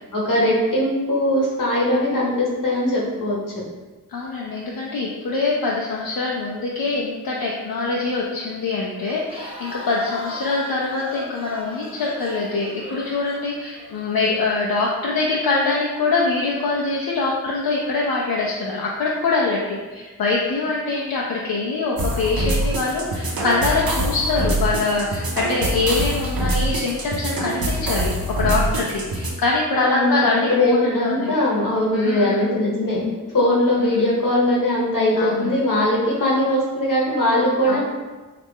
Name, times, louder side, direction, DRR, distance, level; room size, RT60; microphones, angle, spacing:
voice 1, 0.1-3.6 29.7-37.8, left 1 dB, 65° left, -4 dB, 1.1 m, -20 dB
voice 2, 4.1-31.3 31.9-32.4 33.8-34.2 35.2-35.6 37.7-37.8, left 3 dB, 80° left, -3 dB, 0.5 m, -24 dB
Crowd, 9.1-14.0, equal, 15° right, 0.6 m, -38 dB
sound 1, 22.0-29.3, right 1 dB, 85° right, 0.6 m, -24 dB
3.1 x 2.4 x 3.5 m, 1.3 s
cardioid pair, 45°, 35 cm